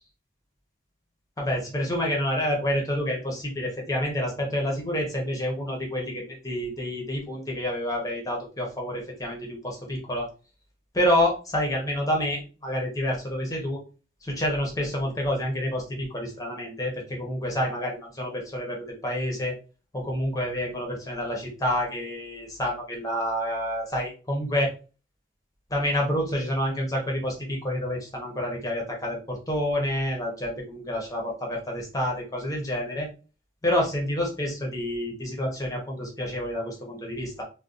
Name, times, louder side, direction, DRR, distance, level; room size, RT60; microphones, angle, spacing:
voice 1, 1.4-10.3 10.9-13.8 14.2-19.5 19.9-24.7 25.7-33.1 33.6-37.4, equal, 20° left, -1 dB, 0.8 m, -28 dB
2.6 x 2.2 x 3.7 m, 0.34 s
head